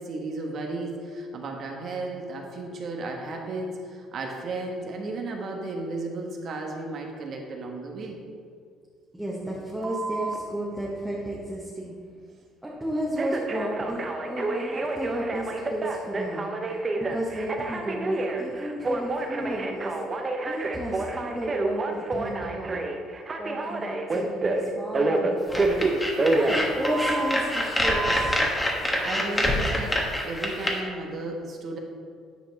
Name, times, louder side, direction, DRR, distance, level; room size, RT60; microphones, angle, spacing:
voice 1, 0.0-8.2 29.0-31.8, right 2 dB, 55° right, 1 dB, 1.2 m, -34 dB
voice 2, 9.1-11.9 12.6-16.4 17.0-19.9 20.5-22.8 23.4-28.5, right 1 dB, 5° right, -5 dB, 1.2 m, -33 dB
Telephone, 9.8-10.4 13.2-27.4 27.8-28.4, right 2 dB, 30° right, 0.8 m, -28 dB
sound 1, 25.5-30.7, left 1 dB, 15° left, 1.3 m, -26 dB
9.2 x 4.5 x 4.0 m, 2.2 s
supercardioid pair, 90°, 0 cm